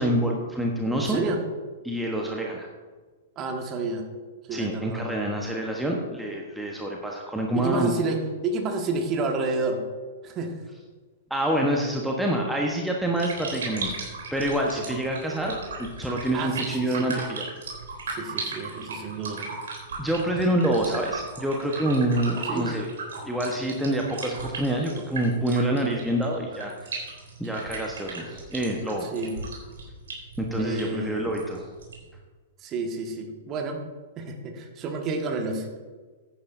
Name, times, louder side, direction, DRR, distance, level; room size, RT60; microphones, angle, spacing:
voice 1, 0.0-1.2 1.8-2.7 4.5-7.9 11.3-17.4 20.0-22.9 23.2-27.0 27.4-29.1 30.4-31.7, right 1 dB, 5° right, -1 dB, 1.2 m, -27 dB
voice 2, 0.9-1.4 3.3-4.0 4.5-5.2 7.5-9.8 10.2-10.5 14.8-14.9 16.3-17.1 18.1-19.4 22.5-22.7 29.0-29.3 30.6-31.3 32.6-33.8 34.2-35.7, right 3 dB, 30° right, 3 dB, 1.7 m, -30 dB
sound 1, 13.0-32.1, right 3 dB, 60° right, 3.5 m, -37 dB
15.5 x 10.0 x 2.7 m, 1.4 s
figure-of-eight pair, 105°, 0 cm